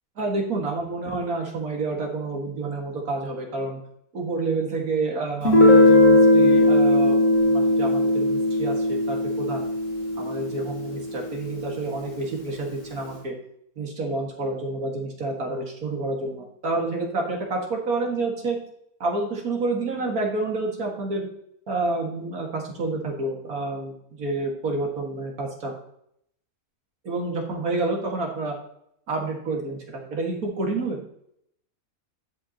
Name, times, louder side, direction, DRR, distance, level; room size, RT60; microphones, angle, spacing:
voice 1, 0.2-3.8 4.1-7.2 7.4-9.7 10.2-13.3 13.8-18.6 19.0-21.3 21.7-25.7 27.0-28.6 29.1-31.0, right 3 dB, 75° right, 0 dB, 2.3 m, -29 dB
Guitar, 5.4-10.9, left 1 dB, 60° left, 1.9 m, -18 dB
12.0 x 5.3 x 2.9 m, 0.72 s
omnidirectional pair, 1.5 m